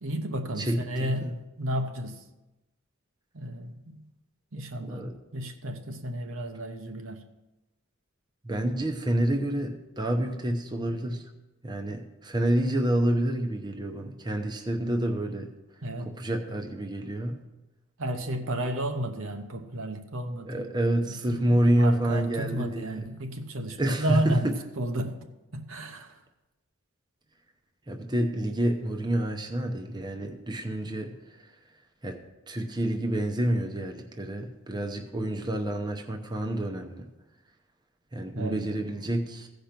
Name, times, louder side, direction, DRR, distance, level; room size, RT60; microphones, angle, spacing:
voice 1, 0.0-2.2 3.3-4.0 4.5-7.2 15.8-16.1 18.0-20.7 21.0-25.2 25.5-26.1 38.3-38.7, right 1 dB, 70° right, 5 dB, 1.0 m, -32 dB
voice 2, 0.6-1.3 4.8-5.2 8.4-11.2 11.6-15.5 16.0-17.4 20.5-23.0 23.8-24.5 27.9-31.1 32.0-32.2 32.5-37.1 38.1-39.5, right 1 dB, 20° right, 3 dB, 0.8 m, -28 dB
15.5 x 5.2 x 5.9 m, 1.0 s
head